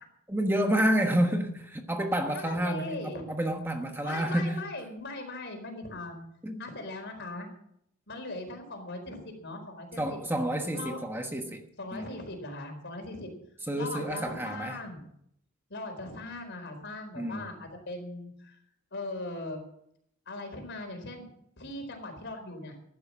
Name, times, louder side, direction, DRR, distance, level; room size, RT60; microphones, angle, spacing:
voice 1, 0.3-4.6 6.4-6.6 10.0-11.6 11.9-12.1 13.7-14.8 17.1-17.5, right 1 dB, 10° right, 4 dB, 1.2 m, -29 dB
voice 2, 2.3-3.2 4.0-6.2 6.6-7.5 8.1-10.2 10.7-11.0 11.8-13.3 13.7-15.0 15.7-18.6 18.9-19.6 20.3-21.3 21.6-22.8, left 2 dB, 55° left, 4 dB, 4.4 m, -39 dB
15.0 x 11.5 x 6.2 m, 0.73 s
head